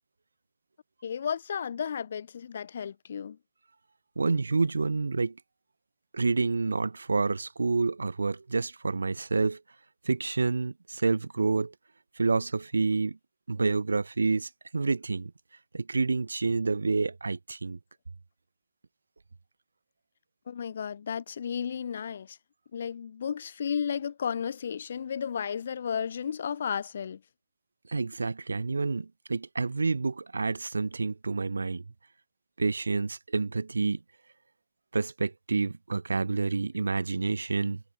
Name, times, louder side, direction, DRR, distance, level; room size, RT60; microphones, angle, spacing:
voice 1, 1.0-3.4 20.5-22.4 22.7-27.2, left 7 dB, 70° left, 0.5 m, -33 dB
voice 2, 4.2-5.4 6.1-9.6 10.0-11.7 12.2-13.2 13.5-15.3 15.7-17.8 27.9-31.8 32.6-34.0 34.9-37.8, right 3 dB, 80° right, 1.1 m, -28 dB
figure-of-eight pair, 90°, 0 cm